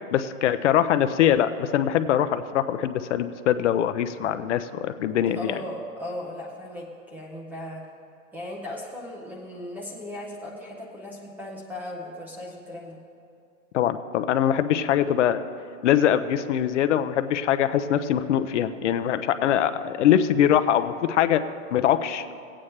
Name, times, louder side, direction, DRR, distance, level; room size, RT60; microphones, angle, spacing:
voice 1, 0.1-5.6 13.7-15.4 15.8-21.4 21.7-22.3, left 10 dB, 60° left, 11 dB, 0.6 m, -22 dB
voice 2, 5.3-7.8 8.3-13.0, left 1 dB, 5° right, -2 dB, 0.5 m, -37 dB
17.0 x 8.7 x 3.2 m, 2.6 s
hypercardioid pair, 150°, 41 cm